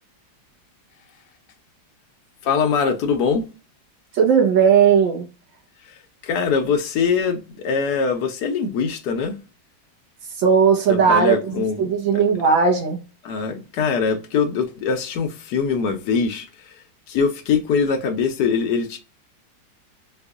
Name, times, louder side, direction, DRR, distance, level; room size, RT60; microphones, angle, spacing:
voice 1, 2.4-3.5 5.8-9.4 10.9-12.3 13.2-19.0, left 5 dB, 70° left, 1.0 m, -23 dB
voice 2, 4.1-5.3 10.4-13.0, right 6 dB, 75° right, 1.8 m, -17 dB
4.7 x 2.5 x 2.4 m
omnidirectional pair, 2.1 m